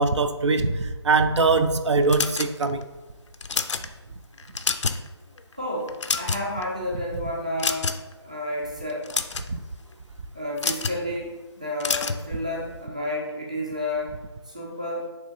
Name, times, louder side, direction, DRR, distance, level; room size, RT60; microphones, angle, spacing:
voice 1, 0.0-2.9 9.5-9.6, right 3 dB, 80° right, 0.4 m, -22 dB
sound 1, 2.1-2.8 3.3-3.9 4.4-5.1 5.4-5.5 5.9-6.6 7.6-8.1 8.9-9.5 10.6-11.0 11.8-12.2, left 5 dB, 90° left, 0.4 m, -27 dB
voice 2, 5.5-7.9 8.2-9.1 10.3-11.3 11.6-14.1 14.5-15.1, left 1 dB, 15° right, 0.4 m, -31 dB
3.7 x 3.1 x 3.9 m
figure-of-eight pair, 175°, 15 cm